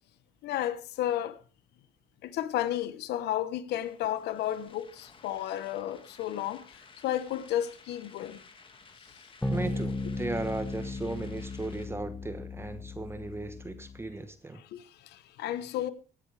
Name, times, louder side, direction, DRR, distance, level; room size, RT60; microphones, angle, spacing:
voice 1, 0.4-1.4 2.2-8.4 14.6-15.9, left 12 dB, 75° left, 1.1 m, -33 dB
sound 1, 3.7-11.8, left 4 dB, 30° left, 2.0 m, -55 dB
sound 2, 9.4-14.2, left 2 dB, 10° left, 1.2 m, -36 dB
voice 2, 9.5-14.6, right 2 dB, 15° right, 1.1 m, -36 dB
17.5 x 10.5 x 3.3 m
cardioid pair, 110°, 17 cm